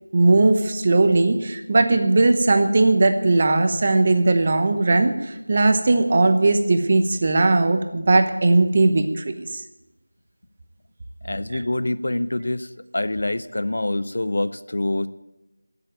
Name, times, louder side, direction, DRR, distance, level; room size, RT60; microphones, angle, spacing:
voice 1, 0.1-9.6 11.5-11.6, right 2 dB, 25° right, 7 dB, 0.9 m, -18 dB
voice 2, 11.3-12.7 12.9-15.1, left 1 dB, 50° left, 14 dB, 0.7 m, -25 dB
14.5 x 7.9 x 9.0 m, 0.98 s
figure-of-eight pair, 175°, 0 cm